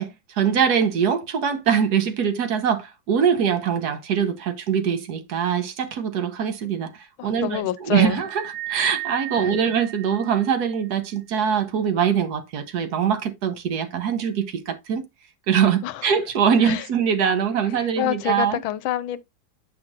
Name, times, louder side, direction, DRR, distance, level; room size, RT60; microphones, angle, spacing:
voice 1, 0.0-15.1 15.5-18.6, right 7 dB, 60° right, 1.3 m, -23 dB
voice 2, 7.2-8.2 9.4-9.5 15.8-16.0 16.6-16.9 18.0-19.2, left 13 dB, 85° left, 1.4 m, -27 dB
sound 1, 8.2-10.8, right 15 dB, 40° right, 0.6 m, -34 dB
9.0 x 5.8 x 2.4 m
omnidirectional pair, 2.2 m